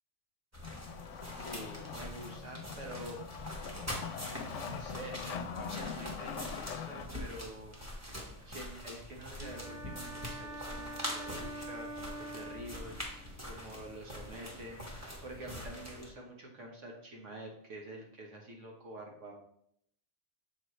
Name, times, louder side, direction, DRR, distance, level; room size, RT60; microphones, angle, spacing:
sound 1, 0.5-16.1, equal, 15° right, 1.2 m, -44 dB
Wood, 0.6-7.1, left 7 dB, 90° left, 0.9 m, -43 dB
voice 1, 1.3-3.2 4.5-7.8 8.4-19.3, right 1 dB, 85° right, 0 dB, 1.6 m, -47 dB
sound 2, 9.4-13.3, right 1 dB, 45° right, 2.4 m, -45 dB
7.1 x 4.2 x 3.2 m, 0.70 s
omnidirectional pair, 1.2 m